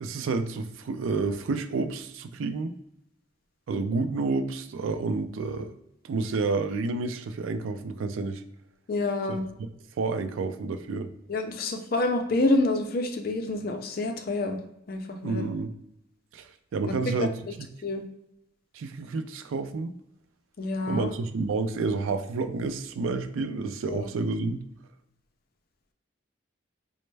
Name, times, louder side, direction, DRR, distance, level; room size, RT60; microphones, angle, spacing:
voice 1, 0.0-2.7 3.7-5.7 6.0-8.4 9.3-9.4 10.0-11.1 15.2-15.7 16.3-17.3 18.7-19.9 20.9-24.6, right 3 dB, 90° right, 9 dB, 0.4 m, -29 dB
voice 2, 8.9-9.4 11.3-14.6 14.9-15.5 16.8-16.9 17.8-18.0 20.6-21.1 23.9-24.0, left 2 dB, 50° left, 5 dB, 0.4 m, -27 dB
4.2 x 2.1 x 3.2 m, 0.80 s
head